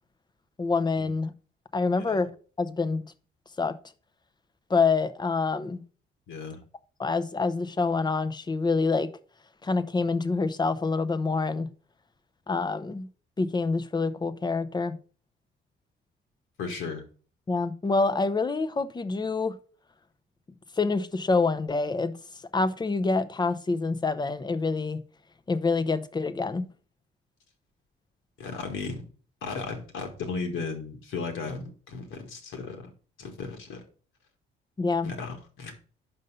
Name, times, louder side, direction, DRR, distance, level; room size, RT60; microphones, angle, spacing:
voice 1, 0.6-1.3 1.7-2.3 2.6-3.0 3.6-3.7 4.7-5.8 7.0-9.1 9.6-11.7 12.5-13.1 13.4-15.0 17.5-19.6 20.8-22.2 22.5-25.0 25.5-26.7 34.8-35.1, left 4 dB, 20° left, 0.6 m, -26 dB
voice 2, 6.3-6.6 16.6-17.0 28.4-29.0 29.4-32.9 33.2-33.8 35.0-35.7, left 4 dB, 80° left, 1.8 m, -35 dB
5.5 x 5.4 x 5.2 m
cardioid pair, 90°, 20 cm